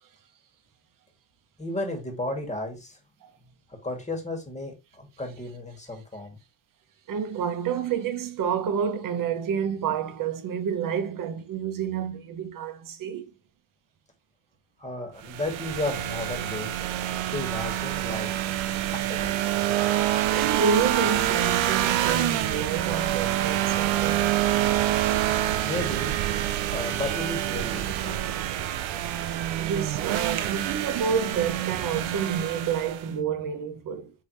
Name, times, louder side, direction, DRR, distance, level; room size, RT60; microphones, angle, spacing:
voice 1, 1.6-3.0 3.8-6.4 14.8-16.7 17.3-18.3 18.9-19.3 25.6-26.2 26.6-28.2, left 2 dB, 15° left, 1.7 m, -33 dB
voice 2, 7.1-13.2 20.3-24.4 26.6-26.7 29.6-34.1, right 7 dB, 45° right, 0.9 m, -29 dB
sound 1, 15.2-33.1, right 12 dB, 70° right, 0.6 m, -27 dB
4.8 x 3.2 x 2.7 m
cardioid pair, 100°, 48 cm